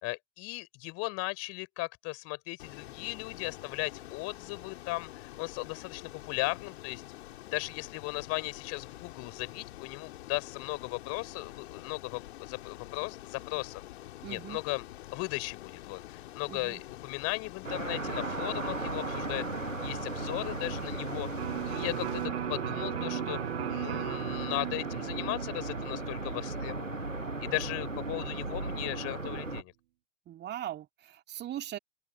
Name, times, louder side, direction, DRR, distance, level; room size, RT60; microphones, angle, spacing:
voice 1, 0.0-7.0 7.5-13.8 14.3-14.8 15.1-27.1 27.4-29.7, left 24 dB, 40° left, 4.1 m, -37 dB
Ocean, 2.6-22.3, left 15 dB, 55° left, 3.4 m, -47 dB
voice 2, 14.2-14.6 16.5-16.8 30.3-31.8, right 12 dB, 25° right, 2.6 m, -40 dB
sound 1, 17.6-29.6, right 2 dB, 90° right, 1.6 m, -36 dB
Electric guitar, 21.4-29.0, right 15 dB, 55° right, 6.5 m, -39 dB
open air
figure-of-eight pair, 90°, 37 cm